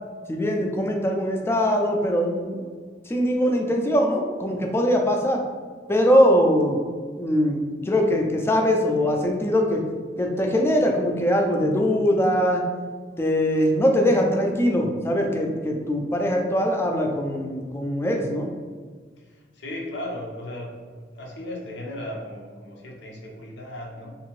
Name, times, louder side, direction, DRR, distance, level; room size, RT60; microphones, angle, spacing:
voice 1, 0.3-2.6 3.1-5.4 5.9-6.8 7.2-9.8 10.2-12.6 13.2-18.5, equal, 15° left, 2 dB, 0.3 m, -22 dB
voice 2, 19.2-20.8 21.1-24.2, left 1 dB, 80° left, 0 dB, 0.6 m, -36 dB
2.8 x 2.6 x 3.0 m, 1.5 s
head